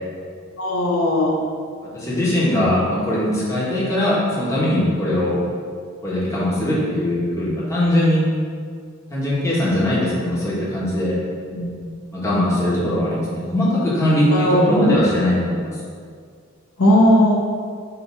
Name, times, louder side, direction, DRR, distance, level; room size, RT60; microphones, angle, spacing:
voice 1, 0.6-1.3 11.5-11.7 14.3-14.9 16.8-17.4, left 1 dB, 85° left, -4 dB, 1.5 m, -17 dB
voice 2, 1.9-5.4 6.0-8.2 9.1-11.1 12.1-15.7, left 1 dB, 15° left, -8 dB, 1.6 m, -20 dB
7.8 x 2.9 x 5.9 m, 2.1 s
head